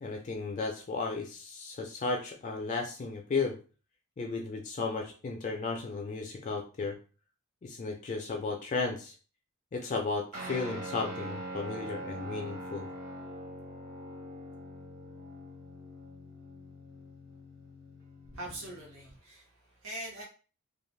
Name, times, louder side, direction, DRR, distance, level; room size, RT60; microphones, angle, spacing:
voice 1, 0.0-3.6 4.2-7.0 7.6-9.1 9.7-12.9, left 4 dB, 35° left, 1 dB, 0.4 m, -34 dB
Guitar, 10.3-19.1, right 1 dB, 40° right, 0.8 m, -43 dB
voice 2, 18.3-20.2, right 1 dB, 70° right, -3 dB, 0.9 m, -42 dB
2.5 x 2.3 x 3.1 m, 0.36 s
head